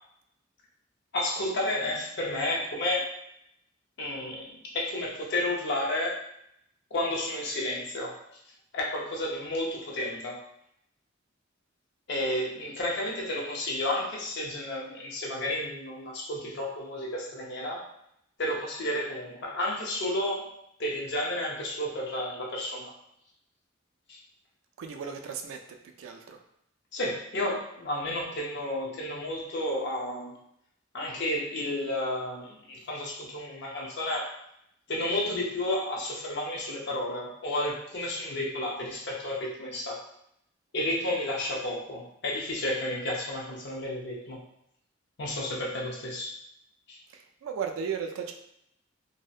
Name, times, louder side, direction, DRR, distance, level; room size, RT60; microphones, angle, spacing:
voice 1, 1.1-3.0 4.0-6.2 6.9-8.2 8.7-10.4 12.1-17.8 18.4-20.5 20.8-22.9 24.1-24.2 26.9-30.3 30.9-34.3 34.9-40.0 40.7-44.4 45.2-46.3 46.9-47.0, left 1 dB, 60° left, -3 dB, 0.6 m, -31 dB
voice 2, 24.8-26.4 47.1-48.3, right 6 dB, 80° right, 5 dB, 0.3 m, -36 dB
2.6 x 2.1 x 2.4 m, 0.75 s
head